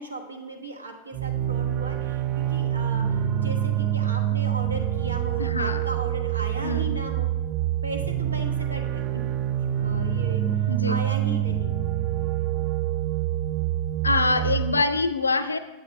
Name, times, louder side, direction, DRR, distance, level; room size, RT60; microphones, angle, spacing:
voice 1, 0.0-7.3 7.8-9.2 9.8-11.8, right 2 dB, 75° right, 4 dB, 0.8 m, -37 dB
sound 1, 1.1-14.8, right 11 dB, 30° right, 0.4 m, -26 dB
voice 2, 5.4-5.8 6.6-6.9 10.7-11.0 14.0-15.6, left 3 dB, 80° left, 10 dB, 0.4 m, -24 dB
8.1 x 6.9 x 3.2 m, 1.1 s
figure-of-eight pair, 90°, 0 cm